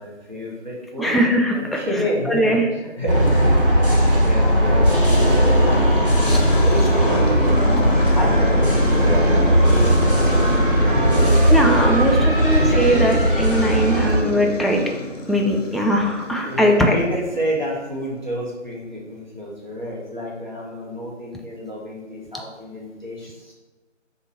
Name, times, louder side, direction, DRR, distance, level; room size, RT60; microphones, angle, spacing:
voice 1, 0.0-3.9 4.2-7.5 8.1-10.5 11.0-12.6 16.4-23.5, equal, 40° right, -5 dB, 0.8 m, -30 dB
voice 2, 1.0-1.8 2.3-2.7 6.3-6.4 11.5-14.8 15.3-17.0, equal, ahead, 1 dB, 0.3 m, -20 dB
sound 1, 3.1-14.2, equal, 45° left, 0.6 m, -17 dB
sound 2, 4.8-17.7, left 2 dB, 80° left, 0.7 m, -29 dB
sound 3, 7.4-11.5, right 1 dB, 85° right, 0.7 m, -33 dB
2.6 x 2.6 x 4.1 m, 1.2 s
figure-of-eight pair, 175°, 37 cm